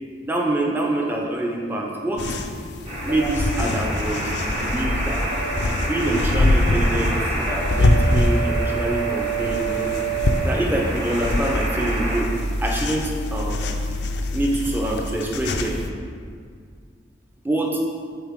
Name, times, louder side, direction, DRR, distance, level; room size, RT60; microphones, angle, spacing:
voice 1, 0.2-2.4 3.0-5.2 5.8-7.2 7.4-9.9 10.4-12.3 12.6-13.7 14.3-15.8 17.4-17.8, right 1 dB, 10° right, -1 dB, 0.7 m, -25 dB
sound 1, 2.2-15.9, left 1 dB, 70° left, 0.5 m, -24 dB
sound 2, 2.9-12.2, right 3 dB, 35° right, 1.0 m, -28 dB
8.6 x 3.9 x 3.6 m, 2.1 s
head